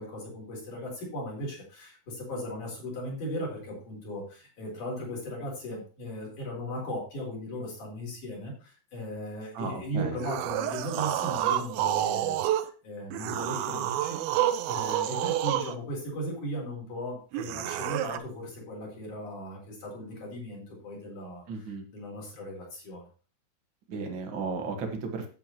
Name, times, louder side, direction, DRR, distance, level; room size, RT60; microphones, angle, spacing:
voice 1, 0.0-12.6 12.8-14.2 14.7-21.7 21.9-23.1, equal, 50° left, -3 dB, 5.5 m, -37 dB
voice 2, 9.5-10.2 21.5-21.8 23.9-25.3, right 4 dB, 60° right, 3 dB, 1.2 m, -34 dB
sound 1, 10.2-12.7 13.1-15.8 17.3-18.2, right 12 dB, 80° right, 2.2 m, -29 dB
11.0 x 8.6 x 3.0 m, 0.36 s
omnidirectional pair, 4.9 m